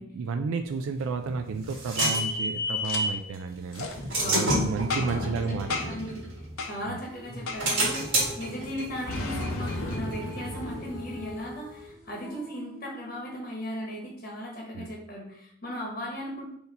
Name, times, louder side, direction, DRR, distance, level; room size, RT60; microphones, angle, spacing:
voice 1, 0.0-3.9 4.3-6.1 6.9-7.0 14.7-14.9, right 4 dB, 70° right, 6 dB, 0.3 m, -32 dB
sound 1, 1.0-3.2 3.7-6.8 7.3-10.7, right 1 dB, 55° right, 1.5 m, -30 dB
Boom, 2.8-3.0 3.7-3.9 4.9-5.3 5.7-6.1 6.6-6.7 7.5-7.8 9.1-11.8, left 3 dB, 70° left, 0.6 m, -34 dB
voice 2, 4.2-6.2 6.6-16.5, equal, 40° left, -2 dB, 1.0 m, -37 dB
Female singing, 7.0-13.5, left 1 dB, 5° right, 1.5 m, -46 dB
4.2 x 2.8 x 3.9 m, 0.69 s
head